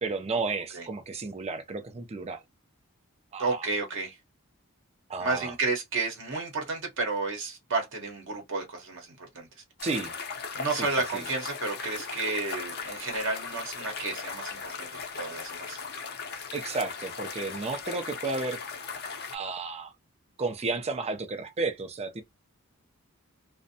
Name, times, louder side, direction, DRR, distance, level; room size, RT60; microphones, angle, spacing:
voice 1, 0.0-2.4 3.3-3.7 5.1-5.5 9.8-10.2 10.8-10.9 11.1-11.2 16.5-18.6 19.3-19.9 20.4-22.2, right 3 dB, 30° right, 0.4 m, -32 dB
voice 2, 3.4-4.2 5.2-9.5 10.5-14.9 15.2-15.8, right 3 dB, 60° right, 0.9 m, -31 dB
sound 1, 9.8-19.4, left 5 dB, 50° left, 0.5 m, -38 dB
2.5 x 2.1 x 2.6 m
head